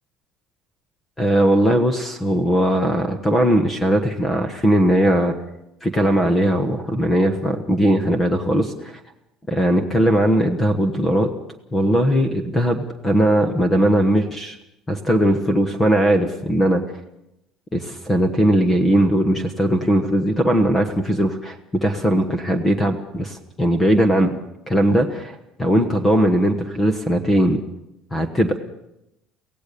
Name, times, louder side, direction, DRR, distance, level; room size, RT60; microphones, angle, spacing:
voice 1, 1.2-5.3 5.8-9.0 9.5-11.3 11.7-14.6 14.9-16.8 17.7-21.6 21.8-24.3 24.7-27.6 28.1-28.6, equal, 15° left, 8 dB, 1.2 m, -19 dB
24.5 x 17.0 x 6.8 m, 0.86 s
cardioid pair, 165°, 0 cm